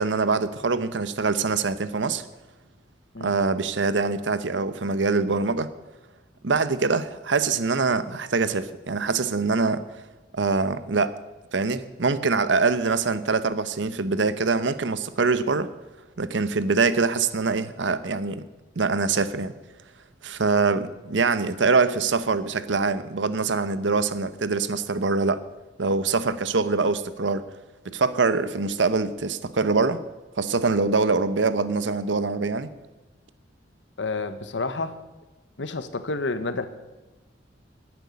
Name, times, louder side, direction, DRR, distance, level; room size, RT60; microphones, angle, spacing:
voice 1, 0.0-2.2 3.2-5.7 6.4-9.8 10.3-11.1 11.5-15.7 16.2-18.4 18.8-19.5 20.2-25.4 25.8-27.4 27.8-30.0 30.4-32.7, right 4 dB, 85° right, 13 dB, 0.8 m, -24 dB
voice 2, 34.0-34.9 35.6-36.7, left 3 dB, 80° left, 11 dB, 1.1 m, -29 dB
11.0 x 9.0 x 9.5 m, 1.1 s
head